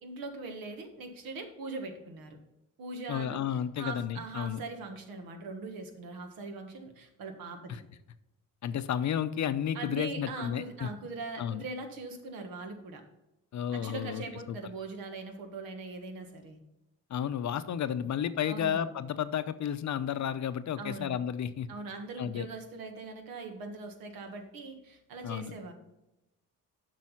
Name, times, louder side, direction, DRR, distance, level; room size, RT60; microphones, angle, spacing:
voice 1, 0.0-2.4 2.8-7.8 9.7-13.0 13.7-16.6 18.5-18.8 20.8-21.2 21.7-25.7, right 3 dB, 80° right, 5 dB, 1.5 m, -41 dB
voice 2, 3.1-4.6 7.7-7.8 8.6-10.9 11.4-11.6 13.5-14.2 14.5-14.6 17.1-21.7 22.2-22.5 25.2-25.5, left 9 dB, 55° left, 13 dB, 0.7 m, -32 dB
7.5 x 5.5 x 5.6 m, 0.92 s
supercardioid pair, 65°, 35 cm